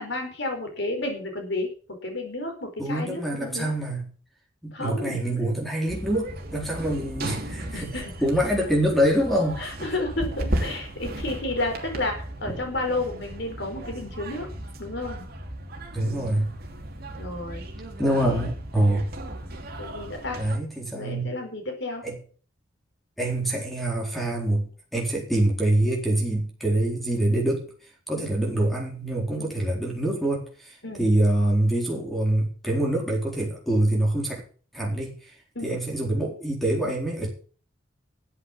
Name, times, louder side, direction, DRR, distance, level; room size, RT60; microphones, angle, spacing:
voice 1, 0.0-1.7 2.0-3.7 4.7-5.2 7.7-8.1 9.6-14.5 14.8-15.3 16.0-16.5 17.2-17.6 18.1-18.4 19.8-20.4 20.9-22.0 28.2-28.3 29.4-29.6 30.8-31.0 35.5-35.7, left 2 dB, 60° left, 4.9 m, -31 dB
voice 2, 2.8-4.0 4.6-7.9 8.2-9.7 12.5-12.6 15.9-16.5 18.0-19.1 20.4-21.3 22.0-22.2 23.2-27.7 28.1-34.4 34.7-35.1 35.6-37.3, right 1 dB, ahead, 4.0 m, -25 dB
sound 1, 5.9-20.6, right 1 dB, 50° right, 2.9 m, -35 dB
13.0 x 8.3 x 7.1 m
head